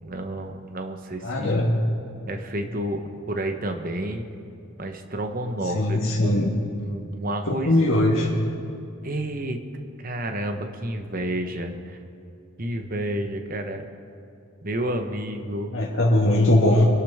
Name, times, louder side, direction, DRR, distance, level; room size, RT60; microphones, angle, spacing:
voice 1, 0.0-1.6 2.3-4.3 4.8-8.1 9.0-9.6 10.0-12.0 12.6-13.8 14.6-15.7, right 1 dB, 40° right, 6 dB, 1.0 m, -30 dB
voice 2, 1.2-1.7 5.7-6.5 7.4-8.3 15.7-16.9, left 1 dB, 65° left, -5 dB, 1.5 m, -20 dB
24.0 x 11.5 x 3.6 m, 2.6 s
head